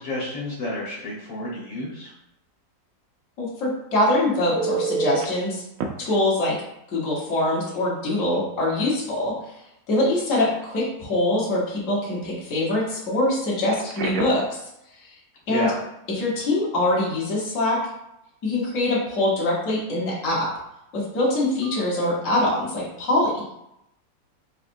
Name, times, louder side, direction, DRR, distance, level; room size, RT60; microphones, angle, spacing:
voice 1, 0.0-2.1 15.5-15.8, left 1 dB, 85° left, -5 dB, 2.0 m, -30 dB
voice 2, 3.4-5.6 6.0-6.5 6.9-9.3 9.9-14.4 15.5-15.7 16.1-17.8 18.4-20.5 20.9-23.3, left 1 dB, 50° left, -6 dB, 1.6 m, -23 dB
Telephone, 4.6-5.3 5.8-5.9 7.7-7.8 8.2-8.4 13.7-14.5 21.6-21.8, right 4 dB, 80° right, 0.7 m, -28 dB
4.1 x 4.1 x 2.6 m, 0.83 s
omnidirectional pair, 1.9 m